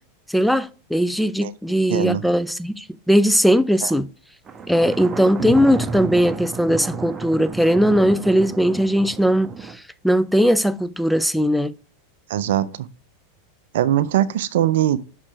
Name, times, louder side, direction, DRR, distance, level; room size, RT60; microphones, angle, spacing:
voice 1, 0.3-4.1 4.7-9.7 10.0-11.7, equal, ahead, 0.4 m, -19 dB
voice 2, 1.9-2.2 3.8-3.9 12.3-12.9 13.7-15.0, right 12 dB, 65° right, 0.4 m, -21 dB
Thunder, 4.5-9.7, right 5 dB, 25° right, 1.0 m, -31 dB
5.9 x 4.3 x 5.9 m
hypercardioid pair, 95°, 0 cm